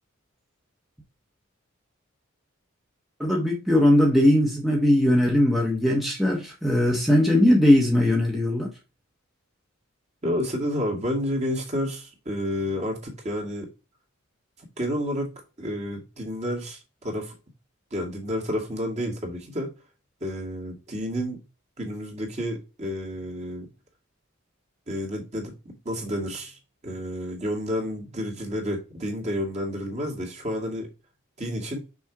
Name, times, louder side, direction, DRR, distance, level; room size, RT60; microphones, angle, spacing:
voice 1, 3.2-8.7, left 1 dB, ahead, 1.0 m, -20 dB
voice 2, 10.2-13.7 14.8-15.3 15.6-17.3 17.9-19.7 20.2-21.4 21.8-23.7 24.9-30.9 31.4-31.8, equal, 35° right, 2.3 m, -30 dB
6.2 x 4.3 x 4.7 m
head